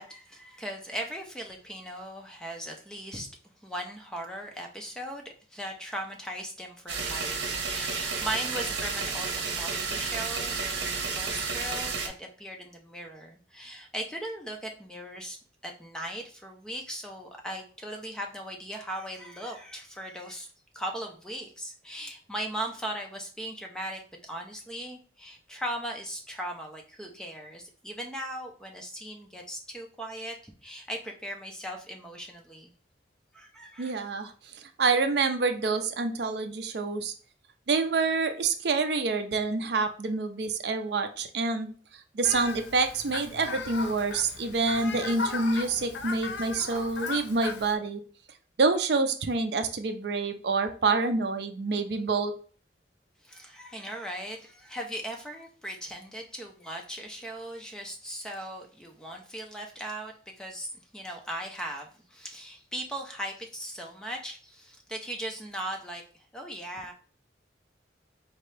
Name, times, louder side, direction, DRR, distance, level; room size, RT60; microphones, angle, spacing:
voice 1, 0.0-3.3 3.6-15.4 15.6-20.5 20.7-32.7 33.3-33.9 53.2-66.9, right 1 dB, 5° left, 1 dB, 0.6 m, -38 dB
sound 1, 6.9-12.1, right 4 dB, 85° right, 0.8 m, -31 dB
voice 2, 33.8-37.1 37.7-41.7 42.1-48.0 48.6-52.3, right 4 dB, 60° right, 7 dB, 0.5 m, -27 dB
Fowl, 42.2-47.7, left 4 dB, 90° left, 0.6 m, -37 dB
4.3 x 2.9 x 3.2 m, 0.41 s
head